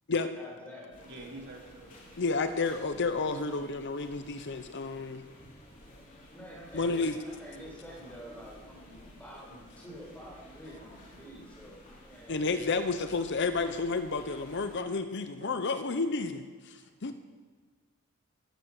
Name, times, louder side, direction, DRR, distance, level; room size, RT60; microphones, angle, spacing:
voice 1, 0.4-1.0 5.8-5.9 6.3-13.0, equal, 5° left, -3 dB, 4.9 m, -48 dB
sound 1, 0.9-14.8, equal, 40° left, 3.5 m, -53 dB
voice 2, 1.0-1.9 14.5-14.7 15.4-15.7 16.0-16.2 16.8-17.1, right 2 dB, 55° right, 0 dB, 2.5 m, -48 dB
voice 3, 2.2-5.2 6.7-7.2 12.3-17.1, left 3 dB, 55° left, 9 dB, 0.8 m, -31 dB
14.0 x 11.5 x 6.6 m, 1.5 s
head